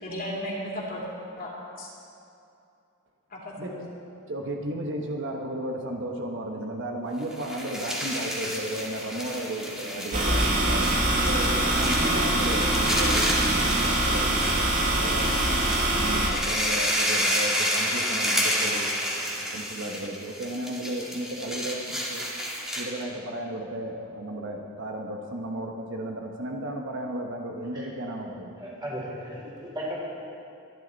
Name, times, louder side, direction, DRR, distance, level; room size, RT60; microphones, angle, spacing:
voice 1, 0.0-1.0 1.4-1.9 3.3-3.8, left 1 dB, 40° left, -4 dB, 3.0 m, -35 dB
voice 2, 4.3-15.4 15.9-22.2 22.7-28.6, right 1 dB, 55° right, 2 dB, 1.2 m, -34 dB
sound 1, 7.2-23.0, equal, ahead, 2.0 m, -30 dB
sound 2, 10.1-16.3, right 1 dB, 35° right, 1.9 m, -24 dB
voice 3, 28.6-30.0, equal, 20° right, -5 dB, 4.0 m, -35 dB
24.0 x 11.0 x 4.1 m, 2.6 s
head